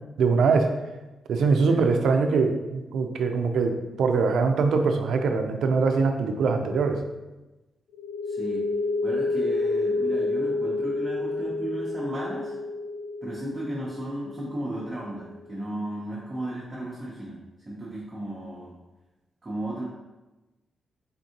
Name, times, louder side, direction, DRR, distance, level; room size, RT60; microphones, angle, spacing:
voice 1, 0.2-0.7 1.3-7.0, right 4 dB, 85° right, 5 dB, 0.4 m, -23 dB
sound 1, 7.9-15.3, left 3 dB, 90° left, 0.8 m, -29 dB
voice 2, 8.3-8.6 9.0-12.6 13.2-17.4 17.6-18.7 19.4-19.8, right 1 dB, 20° right, -6 dB, 0.7 m, -34 dB
3.8 x 3.5 x 2.8 m, 1.1 s
wide cardioid pair, 160°, 0 cm